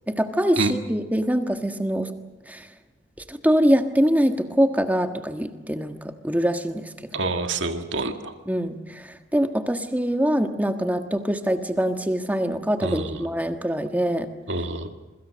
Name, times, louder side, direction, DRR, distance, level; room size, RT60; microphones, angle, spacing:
voice 1, 0.1-2.1 2.5-2.7 3.3-6.9 8.5-14.3, equal, 10° right, 6 dB, 1.5 m, -24 dB
voice 2, 7.1-8.3 12.8-13.3 14.5-14.9, right 3 dB, 75° right, 6 dB, 1.8 m, -27 dB
26.5 x 24.0 x 6.4 m, 1.2 s
head